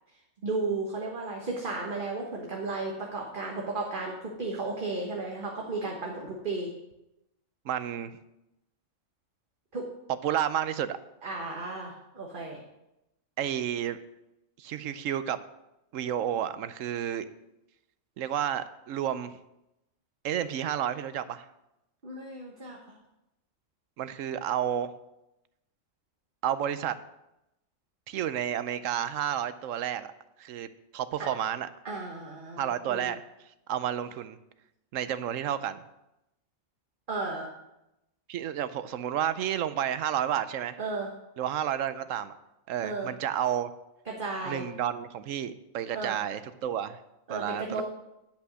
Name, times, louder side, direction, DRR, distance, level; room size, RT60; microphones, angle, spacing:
voice 1, 0.4-6.7 9.7-9.9 11.2-12.6 22.0-23.0 31.2-31.3 31.8-33.1 37.1-37.5 40.8-41.1 42.8-43.1 44.1-44.6 45.9-46.2 47.3-47.8, right 3 dB, 40° right, -1 dB, 1.4 m, -34 dB
voice 2, 7.6-8.1 10.2-11.0 13.4-14.0 14.6-15.4 15.9-17.3 18.2-19.3 20.2-21.4 24.0-24.9 26.4-27.0 28.1-30.1 30.4-30.7 30.9-31.7 32.6-33.2 33.7-34.4 34.9-35.8 38.3-40.8 41.4-42.3 42.7-43.7 44.4-47.0 47.3-47.8, right 10 dB, 80° right, 13 dB, 1.0 m, -31 dB
10.5 x 5.7 x 6.3 m, 0.90 s
omnidirectional pair, 1.4 m